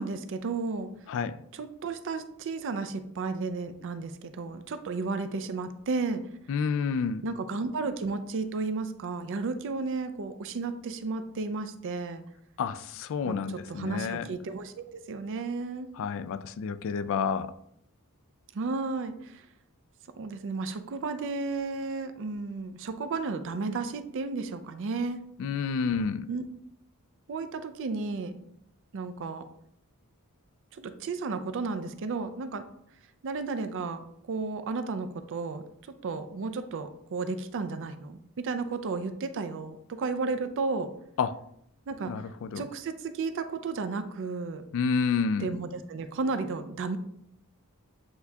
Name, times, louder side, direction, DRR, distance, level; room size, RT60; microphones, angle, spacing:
voice 1, 0.0-0.9 1.6-6.2 7.2-12.2 13.2-13.4 13.7-15.9 18.5-19.4 20.2-25.2 26.3-26.4 27.3-28.3 28.9-29.4 30.7-32.6 33.2-35.6 36.0-40.9 41.9-42.1 42.6-44.6 45.4-47.0, right 4 dB, 60° right, 10 dB, 0.4 m, -33 dB
voice 2, 6.5-7.3 12.6-14.3 15.9-17.5 25.4-26.3 41.2-41.4 42.1-42.7 44.7-45.5, left 5 dB, 60° left, 13 dB, 0.3 m, -29 dB
8.0 x 2.7 x 2.3 m, 0.74 s
head